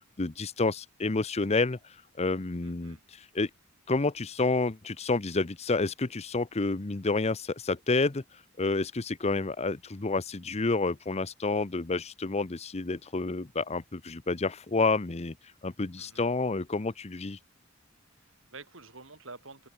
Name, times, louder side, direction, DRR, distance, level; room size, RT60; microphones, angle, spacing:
voice 1, 0.2-1.8 2.2-3.5 3.9-8.2 8.6-15.3 15.6-17.4, left 3 dB, 30° left, 0.7 m, -29 dB
voice 2, 2.6-3.0 16.0-16.3 18.2-19.7, right 3 dB, 65° right, 5.6 m, -49 dB
open air
head